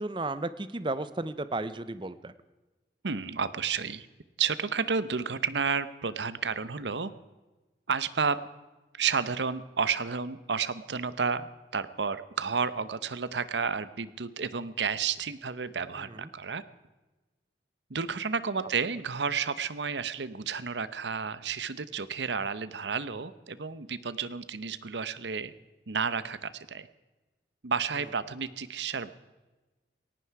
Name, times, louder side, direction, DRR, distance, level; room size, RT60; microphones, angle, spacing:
voice 1, 0.0-2.3 16.0-16.2, right 2 dB, 25° right, 14 dB, 0.7 m, -34 dB
voice 2, 3.0-4.1 4.4-7.1 7.9-8.4 8.9-16.6 17.9-25.5 25.9-26.9 27.6-29.1, right 5 dB, 85° right, 15 dB, 0.9 m, -31 dB
18.0 x 16.0 x 4.8 m, 1.2 s
head